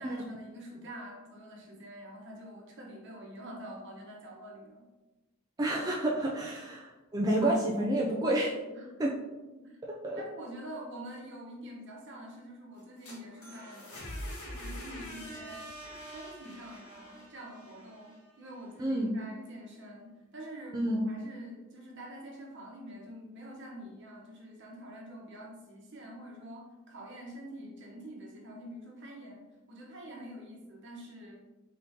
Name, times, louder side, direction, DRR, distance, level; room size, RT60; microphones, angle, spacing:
voice 1, 0.0-4.8 6.3-6.4 8.7-8.9 9.6-9.8 10.2-13.9 14.4-15.7 16.0-31.4, right 1 dB, 55° right, -2 dB, 1.0 m, -46 dB
voice 2, 5.6-8.6 9.0-9.1 9.8-10.2 18.8-19.1 20.7-21.0, right 1 dB, 20° right, -3 dB, 0.3 m, -29 dB
sound 1, 12.8-18.7, equal, 80° left, 1.3 m, -44 dB
3.8 x 3.6 x 2.7 m, 1.1 s
head